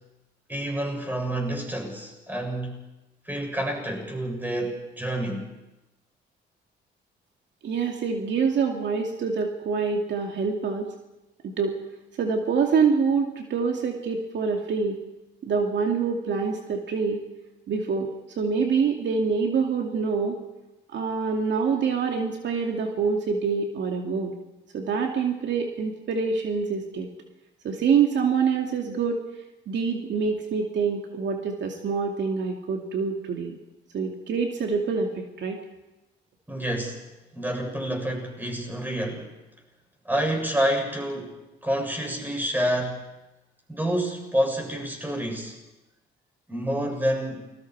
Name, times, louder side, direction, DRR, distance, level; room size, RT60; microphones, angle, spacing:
voice 1, 0.5-2.8 3.3-5.5 36.5-37.0 37.3-39.3 40.0-43.0 43.7-45.6 46.5-47.5, right 1 dB, 10° right, 2 dB, 7.2 m, -28 dB
voice 2, 7.6-10.9 11.4-11.7 12.2-15.0 15.4-17.2 17.7-18.1 18.4-20.4 20.9-24.3 24.7-27.1 27.6-29.2 29.7-33.6 33.9-35.6, right 5 dB, 65° right, 2 dB, 2.4 m, -26 dB
29.0 x 21.0 x 4.8 m, 1.0 s
cardioid pair, 90°, 20 cm